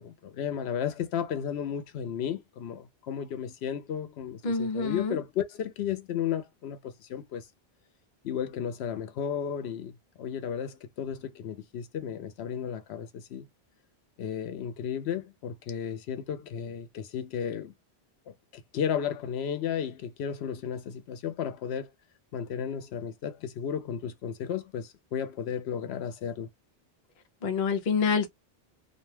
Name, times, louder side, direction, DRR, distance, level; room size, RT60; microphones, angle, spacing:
voice 1, 0.0-7.5 8.2-13.5 14.2-17.7 18.3-18.4 18.7-21.9 22.3-26.5, left 8 dB, 85° left, 0.9 m, -34 dB
voice 2, 4.4-5.2 27.4-28.3, left 5 dB, 50° left, 0.7 m, -27 dB
2.4 x 2.2 x 3.1 m
omnidirectional pair, 1.1 m